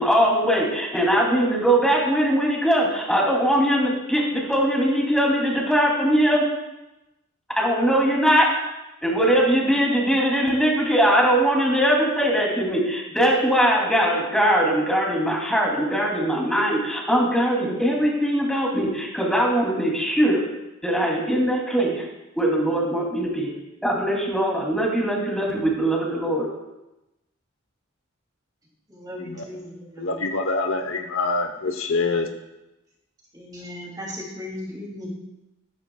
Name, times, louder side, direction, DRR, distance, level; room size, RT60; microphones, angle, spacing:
voice 1, 0.0-6.4 7.6-8.5 9.0-20.4 20.8-22.0 22.4-23.5 23.8-26.5, equal, 5° left, -3 dB, 2.9 m, -21 dB
voice 2, 28.9-30.1 33.3-35.1, left 1 dB, 20° right, -2 dB, 2.9 m, -36 dB
voice 3, 30.0-32.3, left 3 dB, 75° left, 6 dB, 1.0 m, -25 dB
13.5 x 13.0 x 2.4 m, 0.94 s
head